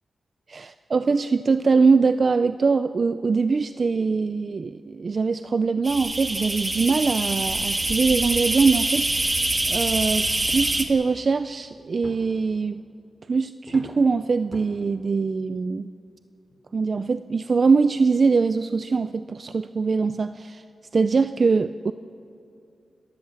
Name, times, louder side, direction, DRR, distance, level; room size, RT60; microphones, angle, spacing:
voice 1, 0.5-9.1 9.7-12.8 13.3-15.9 16.7-20.6 20.9-21.9, right 4 dB, 50° right, 11 dB, 0.4 m, -22 dB
sound 1, 5.8-10.8, right 2 dB, 25° right, 1.6 m, -25 dB
sound 2, 12.0-12.4 13.7-14.1 14.5-14.7 15.5-15.6 16.1-16.2 16.5-16.6 17.2-17.3, left 2 dB, 30° left, 3.2 m, -42 dB
29.0 x 13.5 x 7.4 m, 2.5 s
wide cardioid pair, 95°, 0 cm